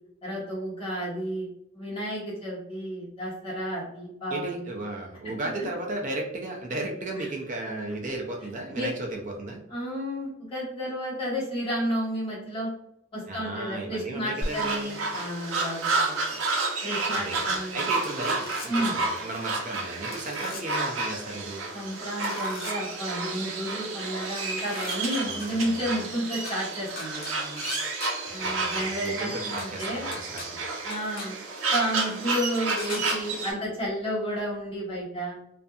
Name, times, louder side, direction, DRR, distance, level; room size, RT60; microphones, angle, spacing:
voice 1, 0.2-1.5 1.7-4.7 5.2-5.3 7.2-7.3 8.7-8.9 9.7-12.7 13.1-16.2 16.8-17.9 18.7-18.9 21.7-27.6 28.3-30.1 30.8-31.4 31.7-35.4, equal, 25° left, -7 dB, 1.2 m, -32 dB
voice 2, 4.3-9.6 13.3-15.0 17.1-21.7 25.2-26.0 28.4-30.7, right 2 dB, 40° right, 0 dB, 0.4 m, -35 dB
sound 1, 14.4-33.5, right 3 dB, 85° right, 0.6 m, -31 dB
sound 2, 18.0-18.7 20.1-20.6 22.2-22.7 24.4-25.5 26.4-26.5 27.0-28.1 29.6-29.7 30.1-30.5 30.9-31.3 32.8-33.2, left 3 dB, 55° left, 0.6 m, -39 dB
2.6 x 2.5 x 2.3 m, 0.77 s
head